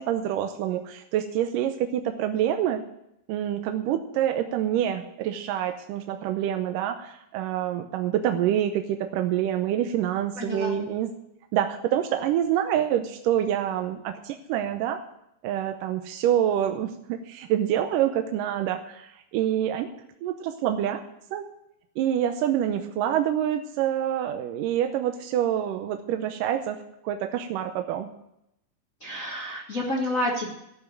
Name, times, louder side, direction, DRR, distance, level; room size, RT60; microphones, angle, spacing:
voice 1, 0.0-2.8 3.3-11.1 11.5-15.0 15.4-19.9 20.2-21.0 21.3-21.5 22.0-26.8 27.0-28.1, right 10 dB, 75° right, 6 dB, 2.1 m, -26 dB
voice 2, 10.4-10.8 29.0-30.5, left 1 dB, 50° left, -2 dB, 0.9 m, -29 dB
13.5 x 6.0 x 8.9 m, 0.81 s
omnidirectional pair, 4.3 m